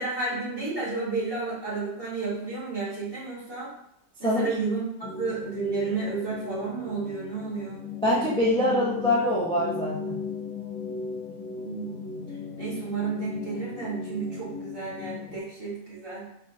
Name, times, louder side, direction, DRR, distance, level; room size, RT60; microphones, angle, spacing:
voice 1, 0.0-3.7 4.2-7.8 11.6-12.2 12.6-16.3, right 3 dB, 35° right, -8 dB, 1.8 m, -31 dB
sound 1, 5.0-15.4, left 4 dB, 65° left, 1.1 m, -37 dB
voice 2, 8.0-10.2, left 1 dB, 5° left, -7 dB, 0.7 m, -24 dB
4.4 x 4.0 x 2.6 m, 0.72 s
omnidirectional pair, 1.6 m